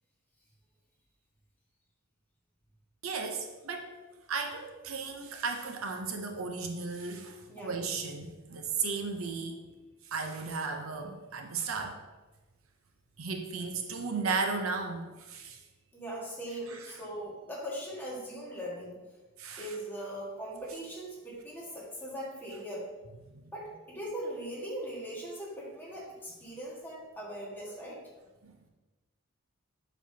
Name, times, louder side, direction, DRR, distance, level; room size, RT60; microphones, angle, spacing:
voice 1, 3.0-9.6 10.0-12.0 13.2-15.6 16.7-17.0 19.4-19.8 23.3-23.5 28.4-28.5, right 4 dB, 75° right, 4 dB, 0.7 m, -35 dB
voice 2, 15.9-19.0 19.6-22.9 23.5-28.0, right 1 dB, 10° left, -5 dB, 1.7 m, -40 dB
7.3 x 5.4 x 2.8 m, 1.2 s
head